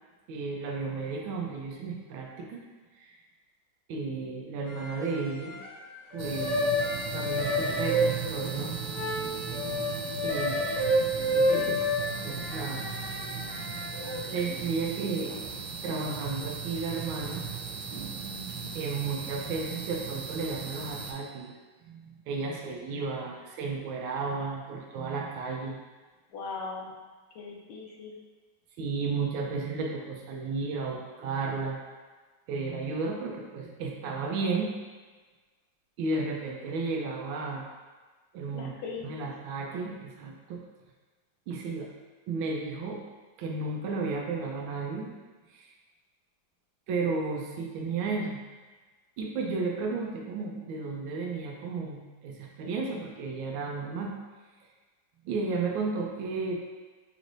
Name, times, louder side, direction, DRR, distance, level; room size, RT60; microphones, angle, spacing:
voice 1, 0.3-2.6 3.0-3.1 3.9-5.6 6.1-6.7 7.1-8.8 10.2-10.6 11.3-12.8 14.3-15.3 15.8-17.5 18.7-21.5 21.8-25.8 28.8-31.8 32.5-34.7 36.0-37.6 38.3-38.7 39.0-40.6 41.5-41.9 42.3-43.0 43.4-45.2 45.5-45.7 46.9-48.4 49.2-54.1 55.2-56.7, right 4 dB, 90° right, 0 dB, 1.4 m, -33 dB
sound 1, 4.7-5.8 6.1-14.2, equal, 65° left, 1.3 m, -30 dB
sound 2, 6.2-21.1, right 5 dB, 70° right, 1.1 m, -37 dB
voice 2, 14.0-14.5 26.3-26.9 27.3-28.1 38.5-39.0, left 4 dB, 85° left, -2 dB, 1.5 m, -40 dB
5.2 x 3.2 x 2.5 m, 1.3 s
omnidirectional pair, 2.2 m